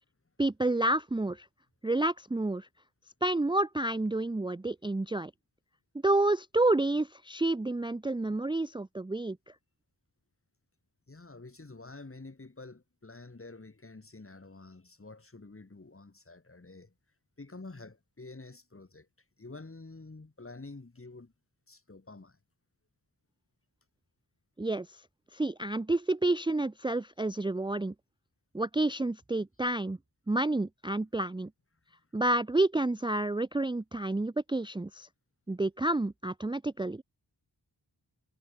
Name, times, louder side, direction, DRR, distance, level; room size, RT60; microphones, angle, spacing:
voice 1, 0.4-1.5 1.8-2.7 3.2-5.3 6.0-9.4 24.6-24.9 25.3-27.9 28.5-30.0 30.3-31.5 32.1-35.1 35.5-37.0, right 2 dB, 10° right, 0.5 m, -29 dB
voice 2, 11.1-16.9 17.4-19.1 19.4-21.3 21.7-22.4, left 3 dB, 30° left, 1.8 m, -48 dB
wide cardioid pair, 55°, 43 cm